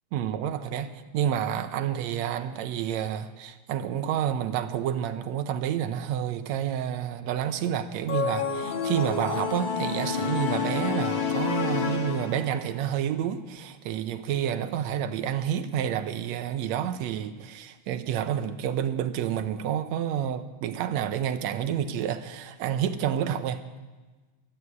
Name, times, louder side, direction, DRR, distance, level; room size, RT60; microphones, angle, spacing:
voice 1, 0.1-23.6, right 9 dB, 75° right, 10 dB, 1.7 m, -29 dB
sound 1, 8.1-12.7, left 6 dB, 45° left, 1.7 m, -29 dB
12.5 x 12.0 x 8.2 m, 1.3 s
omnidirectional pair, 3.8 m